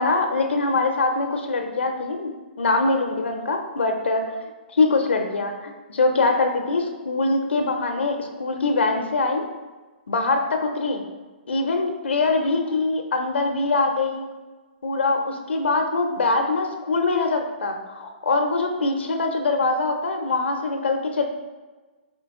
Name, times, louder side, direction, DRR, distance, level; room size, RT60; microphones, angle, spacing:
voice 1, 0.0-2.3 2.6-4.3 4.7-9.4 10.1-11.0 11.5-14.3 14.8-21.2, left 3 dB, 90° left, 4 dB, 0.5 m, -23 dB
4.4 x 2.8 x 3.5 m, 1.3 s
hypercardioid pair, 145°, 6 cm